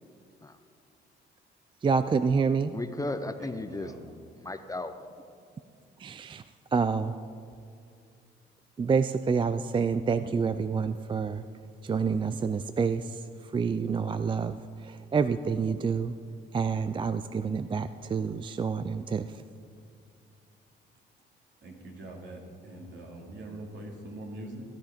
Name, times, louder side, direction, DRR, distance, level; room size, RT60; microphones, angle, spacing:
voice 1, 1.8-2.7 6.0-6.4 6.7-7.2 8.8-11.4 11.8-16.1 16.5-19.4, right 5 dB, 25° right, 12 dB, 0.4 m, -28 dB
voice 2, 2.7-3.9 4.4-5.0, left 2 dB, 15° left, 9 dB, 0.7 m, -35 dB
voice 3, 3.4-4.0 21.6-24.6, right 1 dB, 65° right, 0 dB, 2.7 m, -43 dB
16.0 x 10.0 x 5.1 m, 2.3 s
cardioid pair, 90°, 20 cm